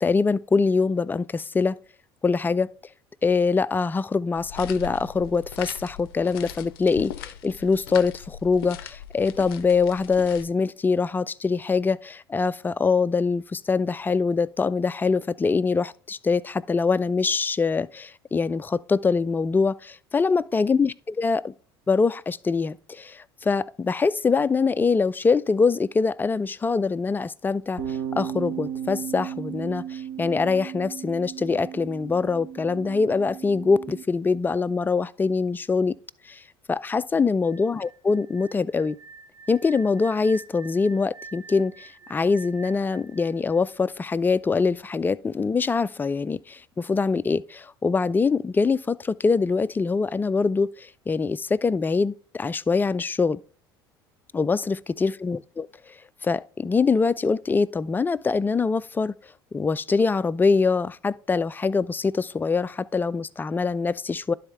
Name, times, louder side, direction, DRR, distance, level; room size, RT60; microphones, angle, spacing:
voice 1, 0.0-1.8 2.2-2.7 3.2-21.5 21.9-35.9 36.3-36.4 36.7-39.0 39.5-53.4 54.3-55.7 56.2-59.1 59.5-64.3, left 4 dB, 15° left, 0.3 m, -24 dB
sound 1, 4.3-10.5, left 10 dB, 70° left, 0.5 m, -40 dB
sound 2, 27.8-34.0, right 9 dB, 50° right, 1.6 m, -35 dB
sound 3, 37.4-44.3, right 3 dB, 35° right, 0.9 m, -47 dB
11.5 x 4.0 x 3.4 m
figure-of-eight pair, 65°, 13 cm